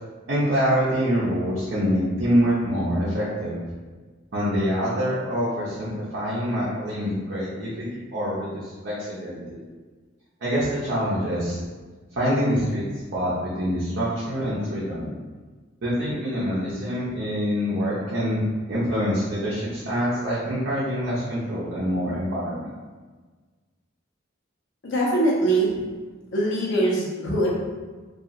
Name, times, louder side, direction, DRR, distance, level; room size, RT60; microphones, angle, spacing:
voice 1, 0.3-3.6 4.3-9.6 10.4-11.6 12.2-12.8 13.1-15.1 15.8-18.4 18.7-22.7, equal, 60° right, -9 dB, 0.6 m, -25 dB
voice 2, 24.8-25.7 26.3-27.5, right 1 dB, 70° left, -5 dB, 0.8 m, -22 dB
2.8 x 2.3 x 2.5 m, 1.4 s
head